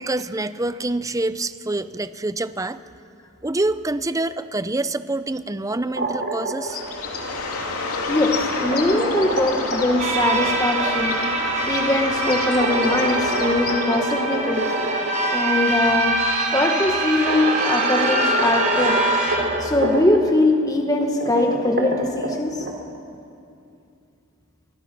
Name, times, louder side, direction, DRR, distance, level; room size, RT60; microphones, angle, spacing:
voice 1, 0.0-2.8 3.4-6.9, right 2 dB, 15° right, 13 dB, 0.6 m, -26 dB
sound 1, 5.7-6.9 8.0-10.9 12.5-15.3 15.6-15.7 16.7-16.8 17.3-20.2 21.0-22.7, right 1 dB, 50° right, 3.1 m, -27 dB
Bird, 6.6-14.4, left 3 dB, 85° left, 2.7 m, -29 dB
voice 2, 8.1-11.3 11.7-14.7 15.3-16.3 16.5-19.0 19.6-22.7, left 2 dB, 15° left, 3 dB, 1.4 m, -21 dB
sound 2, 10.0-19.4, right 2 dB, 35° right, 3.9 m, -24 dB
28.0 x 23.5 x 6.2 m, 2.5 s
head